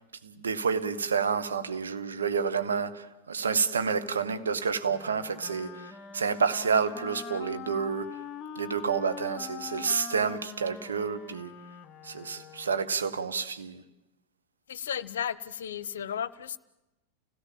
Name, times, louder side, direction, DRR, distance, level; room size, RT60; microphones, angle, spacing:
voice 1, 0.2-8.2 8.6-11.5 12.0-13.8, right 6 dB, 70° right, 1.2 m, -29 dB
Wind instrument woodwind instrument, 4.9-12.9, left 7 dB, 30° left, 0.8 m, -43 dB
voice 2, 14.7-16.6, left 8 dB, 65° left, 0.7 m, -34 dB
29.5 x 17.0 x 7.4 m
figure-of-eight pair, 90°, 0 cm